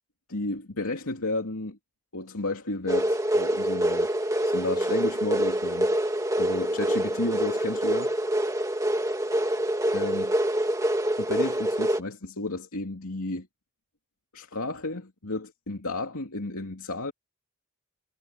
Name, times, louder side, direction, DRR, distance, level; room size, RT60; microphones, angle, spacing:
voice 1, 0.3-1.8 2.1-4.1 4.4-5.9 6.4-8.2 9.9-10.3 11.2-13.5 14.3-17.1, left 2 dB, 75° left, 2.7 m, -32 dB
sound 1, 2.9-12.0, right 1 dB, 15° right, 2.0 m, -26 dB
head